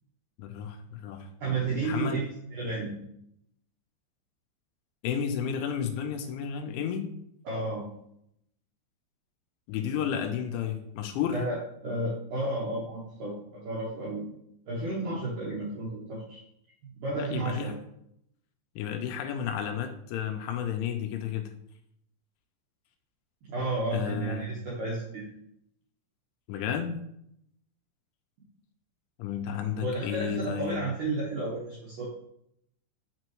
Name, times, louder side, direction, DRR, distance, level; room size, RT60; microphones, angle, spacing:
voice 1, 0.4-1.3 1.8-2.2 5.0-7.1 9.7-11.4 17.2-17.7 18.8-21.4 23.9-24.5 26.5-27.0 29.2-30.8, left 8 dB, 80° left, 6 dB, 3.0 m, -32 dB
voice 2, 1.4-3.0 7.4-7.8 11.3-11.6 11.8-14.3 14.7-16.4 16.8-17.7 23.5-25.2 29.8-32.1, right 2 dB, 70° right, -6 dB, 2.1 m, -32 dB
6.6 x 6.1 x 3.0 m, 0.74 s
omnidirectional pair, 5.5 m